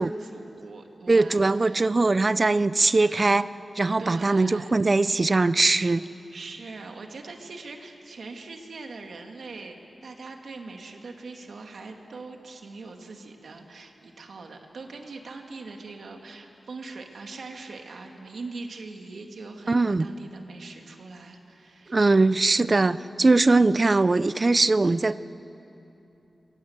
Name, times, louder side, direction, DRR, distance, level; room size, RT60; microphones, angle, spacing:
voice 1, 0.0-2.0 3.0-3.4 4.0-4.7 5.7-6.0 6.3-22.2, right 3 dB, 75° right, 3 dB, 2.4 m, -42 dB
voice 2, 1.1-3.5 3.8-6.0 19.7-20.1 21.9-25.2, right 3 dB, 30° right, 16 dB, 0.5 m, -21 dB
28.0 x 23.0 x 8.1 m, 2.9 s
wide cardioid pair, 135°, 0 cm